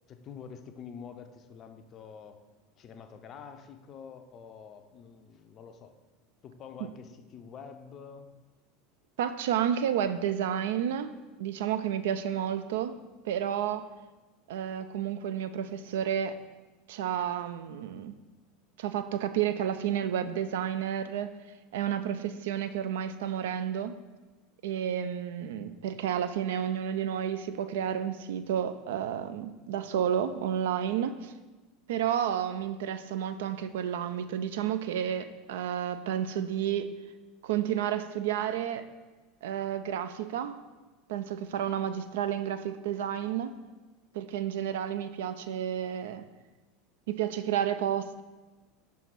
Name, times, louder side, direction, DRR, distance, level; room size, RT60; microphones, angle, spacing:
voice 1, 0.1-2.5 2.8-6.0 6.4-8.4, left 6 dB, 35° left, 8 dB, 0.5 m, -47 dB
voice 2, 9.2-11.1 11.4-13.0 13.2-13.9 14.5-16.4 16.9-18.1 18.8-21.4 21.7-23.9 24.6-31.3 31.9-36.9 37.4-38.9 39.4-40.6 41.1-43.6 44.1-46.2 47.1-48.2, right 9 dB, 60° right, 11 dB, 0.3 m, -31 dB
5.7 x 4.5 x 4.3 m, 1.2 s
figure-of-eight pair, 75°, 0 cm